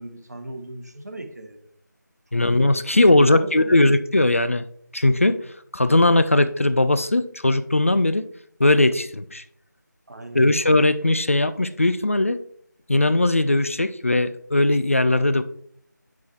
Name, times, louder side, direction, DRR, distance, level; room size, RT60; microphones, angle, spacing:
voice 1, 0.0-1.6 2.3-2.4 3.1-3.8 10.1-10.4, right 1 dB, 55° right, 6 dB, 1.1 m, -37 dB
voice 2, 2.3-4.7 4.9-5.4 5.7-8.3 8.6-9.4 10.3-12.4 12.9-15.4, left 2 dB, 45° left, 12 dB, 0.3 m, -19 dB
7.7 x 5.9 x 2.9 m, 0.67 s
figure-of-eight pair, 170°, 10 cm